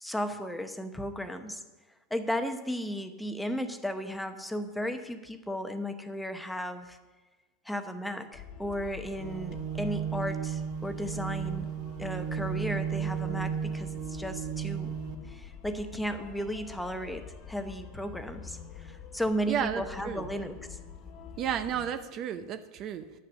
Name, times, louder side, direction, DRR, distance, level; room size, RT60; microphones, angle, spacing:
voice 1, 0.0-1.6 2.1-7.0 7.7-11.7 12.0-14.9 15.3-20.8, equal, 5° left, 7 dB, 0.8 m, -35 dB
sound 1, 8.3-21.9, left 7 dB, 45° left, 1.1 m, -46 dB
sound 2, 9.2-15.1, right 8 dB, 60° right, 1.1 m, -34 dB
voice 2, 19.5-20.3 21.4-23.2, right 9 dB, 40° right, 10 dB, 0.6 m, -33 dB
10.0 x 6.5 x 7.1 m, 1.2 s
supercardioid pair, 130°, 0 cm